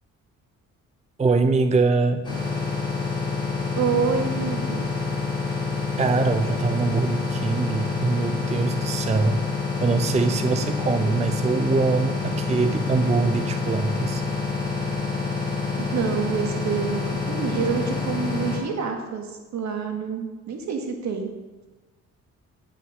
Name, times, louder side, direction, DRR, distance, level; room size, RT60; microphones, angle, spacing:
voice 1, 1.2-2.2 6.0-9.5 9.8-14.2, right 4 dB, 20° right, 9 dB, 0.6 m, -23 dB
sound 1, 2.2-18.6, left 4 dB, 15° left, 3.5 m, -27 dB
voice 2, 3.7-4.9 15.8-21.3, right 5 dB, 65° right, 4 dB, 1.7 m, -27 dB
9.4 x 5.7 x 6.2 m, 1.2 s
cardioid pair, 90°, 30 cm